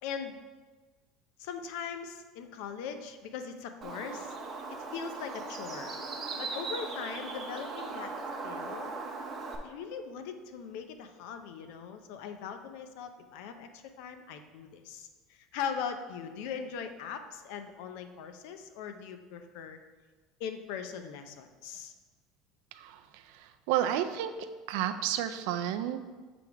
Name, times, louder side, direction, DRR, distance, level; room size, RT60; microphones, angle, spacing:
voice 1, 0.0-0.3 1.4-4.3 4.7-5.9 6.4-8.1 8.4-8.9 9.6-19.8 20.4-21.9, left 7 dB, 75° left, 8 dB, 0.6 m, -40 dB
Bird, 3.8-9.6, right 3 dB, 25° right, 0.8 m, -39 dB
voice 2, 22.7-24.3 24.7-26.1, right 11 dB, 75° right, 9 dB, 0.4 m, -32 dB
7.0 x 3.4 x 4.7 m, 1.4 s
cardioid pair, 165°, 0 cm